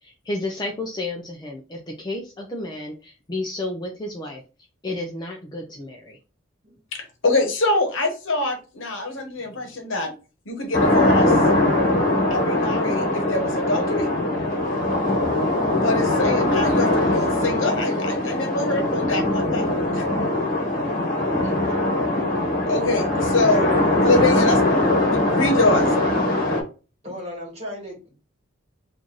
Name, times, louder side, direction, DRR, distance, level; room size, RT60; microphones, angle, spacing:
voice 1, 0.0-4.4 4.8-6.2 9.4-9.7, left 2 dB, 20° left, 0 dB, 0.4 m, -32 dB
voice 2, 6.9-10.1 10.5-11.3 12.3-14.1 15.8-19.6 19.9-20.5 22.7-25.9, left 2 dB, 80° left, 5 dB, 0.9 m, -25 dB
sound 1, 10.7-26.6, left 1 dB, 50° left, 1.2 m, -21 dB
voice 3, 21.4-22.0 23.3-23.6 27.0-28.1, equal, 35° right, -1 dB, 1.7 m, -37 dB
3.0 x 2.5 x 3.8 m, 0.33 s
head